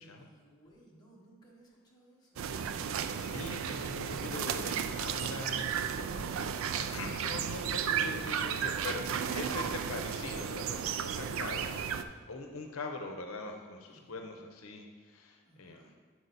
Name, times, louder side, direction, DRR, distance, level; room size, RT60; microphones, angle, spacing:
voice 1, 0.0-2.5 13.9-14.2 15.4-15.9, right 1 dB, 20° left, -4 dB, 1.3 m, -60 dB
sound 1, 2.4-12.0, right 7 dB, 75° right, 0.3 m, -34 dB
voice 2, 2.9-15.9, left 3 dB, 85° left, 3 dB, 0.7 m, -43 dB
7.8 x 4.8 x 4.1 m, 1.5 s
head